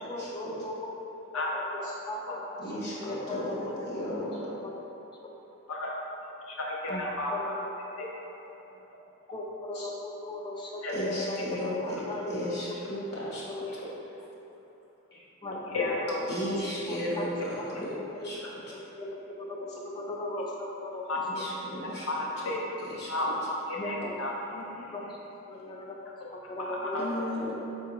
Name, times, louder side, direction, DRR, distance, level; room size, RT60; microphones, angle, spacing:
voice 1, 0.1-0.9 1.3-3.6 3.8-4.3 4.6-4.7 5.2-5.3 6.9-8.1 8.5-8.6 9.3-13.1 13.5-13.7 14.0-14.1 15.4-16.6 16.9-17.3 17.5-17.6 18.2-18.3 18.7-21.0 21.3-21.4 23.7-24.3 24.8-25.2 25.5-26.0 26.3-27.1 27.4-27.5, left 2 dB, 20° left, -1 dB, 0.4 m, -38 dB
voice 2, 2.6-4.6 9.7-9.9 10.9-13.4 15.1-15.2 16.3-18.0 18.2-18.4 21.3-22.1 22.8-23.1 24.0-24.1 24.5-24.9 26.9-27.5, left 1 dB, 50° left, -8 dB, 1.1 m, -35 dB
voice 3, 6.2-7.3 10.8-10.9 15.7-16.2 17.0-17.1 21.1-21.2 22.1-22.6 23.1-24.3 26.2-26.3 26.6-27.0, left 2 dB, 70° left, -2 dB, 0.7 m, -32 dB
4.8 x 3.5 x 3.0 m, 2.9 s
head